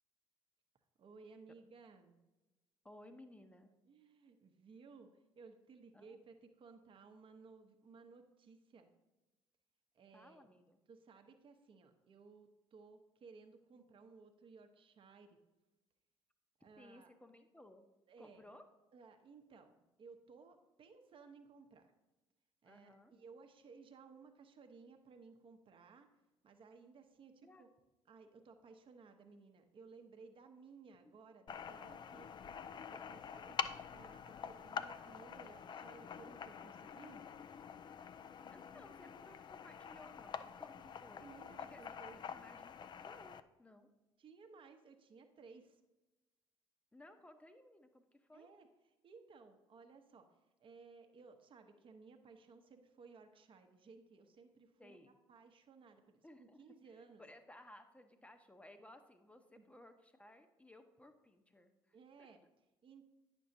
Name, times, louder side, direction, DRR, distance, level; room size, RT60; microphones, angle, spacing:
voice 1, 1.0-2.2 3.8-8.9 9.9-10.5 10.9-15.4 16.6-17.1 18.1-18.4 18.9-21.9 22.6-26.1 26.4-27.7 28.1-32.4 32.7-33.6 33.9-37.2 40.8-40.9 41.2-42.2 44.2-45.8 48.3-50.3 50.6-55.0 55.3-57.2 59.5-59.7 61.9-62.4 62.8-63.0, right 4 dB, 45° right, 5 dB, 0.9 m, -59 dB
voice 2, 2.8-3.7 5.9-6.2 10.1-10.8 13.7-13.8 16.8-17.8 18.2-18.6 22.6-23.1 27.4-27.6 30.9-31.1 33.5-34.0 38.5-41.3 41.6-43.9 46.9-48.5 54.8-55.1 56.2-56.6 57.0-62.3, left 1 dB, 10° left, 8 dB, 0.8 m, -60 dB
sound 1, 31.5-43.4, left 7 dB, 40° left, 0.4 m, -47 dB
9.3 x 6.2 x 2.7 m, 1.1 s
hypercardioid pair, 55°, 12 cm